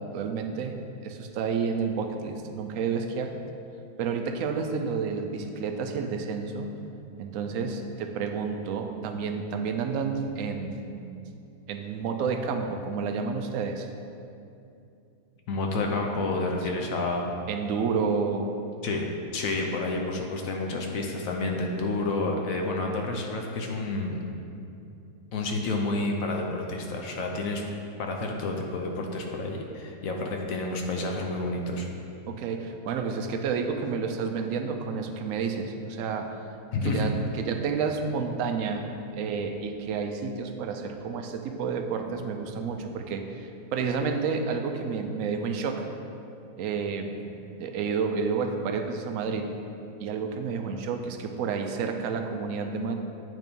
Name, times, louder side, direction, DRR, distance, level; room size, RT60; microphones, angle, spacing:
voice 1, 0.0-3.4 4.0-6.7 7.2-10.9 11.7-13.9 16.6-16.7 17.5-18.5 32.3-36.4 36.8-45.9 46.6-47.3 47.6-49.5 50.0-52.9, right 5 dB, 70° right, 5 dB, 0.8 m, -30 dB
voice 2, 15.5-17.3 18.8-19.1 19.3-24.2 25.3-27.6 28.0-31.9 36.7-37.1, left 2 dB, 65° left, 1 dB, 1.0 m, -29 dB
9.0 x 3.0 x 5.2 m, 2.7 s
omnidirectional pair, 1.7 m